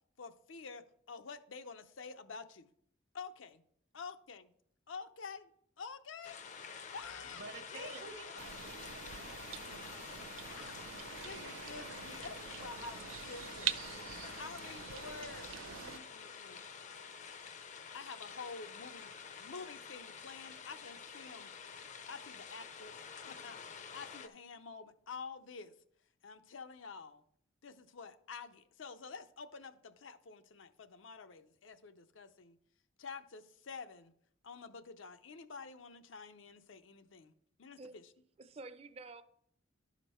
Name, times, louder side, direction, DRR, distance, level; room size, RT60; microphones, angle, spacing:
voice 1, 0.2-2.7 3.1-3.6 3.9-4.5 4.9-5.5 5.8-6.4 6.9-7.4 7.7-7.9 8.3-8.4 9.7-9.8 10.4-13.8 14.2-16.6 17.9-19.1 19.4-21.5 22.1-23.0 23.2-25.7 26.2-27.2 27.6-32.6 33.0-34.1 34.4-37.3 37.6-38.0, left 5 dB, 80° left, 0.6 m, -49 dB
sound 1, 6.2-24.3, left 6 dB, 35° left, 0.5 m, -49 dB
voice 2, 7.2-9.9, right 3 dB, 70° right, 1.0 m, -51 dB
sound 2, 8.4-16.0, right 10 dB, 90° right, 0.5 m, -44 dB
voice 3, 38.4-39.2, right 3 dB, 30° right, 0.4 m, -49 dB
11.5 x 5.1 x 4.3 m
head